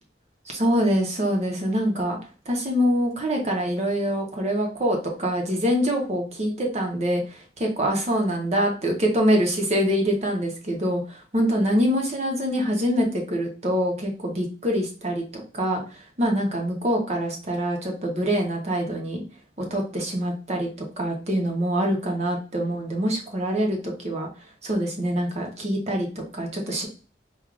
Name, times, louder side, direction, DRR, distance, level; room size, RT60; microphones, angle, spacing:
voice 1, 0.5-2.2 2.5-19.2 19.6-20.7 21.0-24.3 24.6-26.9, equal, 40° right, 1 dB, 1.0 m, -25 dB
4.6 x 2.6 x 2.5 m, 0.36 s
head